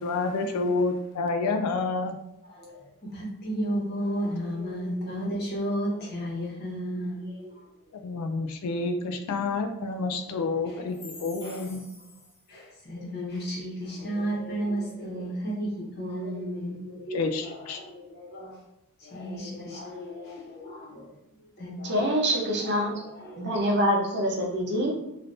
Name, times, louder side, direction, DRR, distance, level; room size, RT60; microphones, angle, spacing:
voice 1, 0.0-2.2 8.0-11.8 17.1-17.8, left 3 dB, 75° left, 6 dB, 0.3 m, -29 dB
voice 2, 2.4-7.7 10.4-11.8 12.5-18.6 19.0-21.1 21.6-23.6, equal, 45° left, -5 dB, 1.1 m, -34 dB
voice 3, 21.8-22.9 23.4-24.9, equal, 50° right, -1 dB, 0.7 m, -25 dB
3.3 x 2.5 x 2.6 m, 0.87 s
head